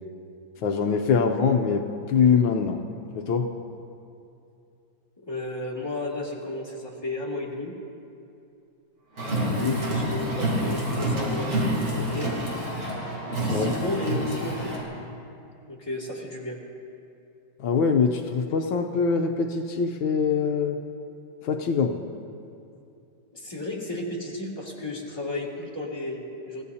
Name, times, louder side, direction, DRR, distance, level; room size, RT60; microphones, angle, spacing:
voice 1, 0.6-2.8 3.1-3.5 9.5-9.8 13.5-13.7 17.6-20.8 21.4-22.0, left 5 dB, 80° left, 4 dB, 1.5 m, -23 dB
voice 2, 5.2-7.7 9.5-12.3 13.4-14.8 15.7-16.6 23.3-26.6, left 2 dB, 10° left, -5 dB, 2.4 m, -33 dB
Car, 9.2-14.8, right 1 dB, 70° right, 4.0 m, -28 dB
28.5 x 16.0 x 2.8 m, 2.5 s
omnidirectional pair, 2.2 m